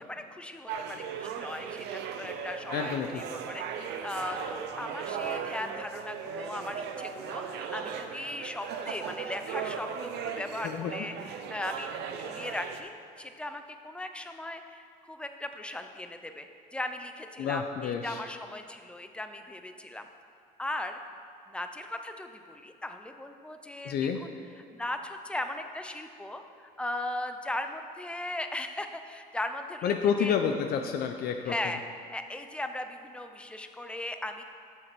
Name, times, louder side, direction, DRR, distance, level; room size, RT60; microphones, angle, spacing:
voice 1, 0.1-11.9 12.2-12.9 13.2-20.1 20.6-21.0 21.5-24.3 24.7-26.4 26.8-29.9 30.2-30.3 31.5-31.8 32.1-34.4, left 1 dB, 5° left, 7 dB, 0.6 m, -38 dB
sound 1, 0.7-12.8, right 7 dB, 80° right, 0.7 m, -37 dB
voice 2, 2.7-3.2 10.6-11.1 17.4-18.2 23.8-24.2 29.8-31.5, left 7 dB, 65° left, 5 dB, 0.6 m, -29 dB
7.4 x 6.6 x 6.1 m, 2.3 s
cardioid pair, 110°, 17 cm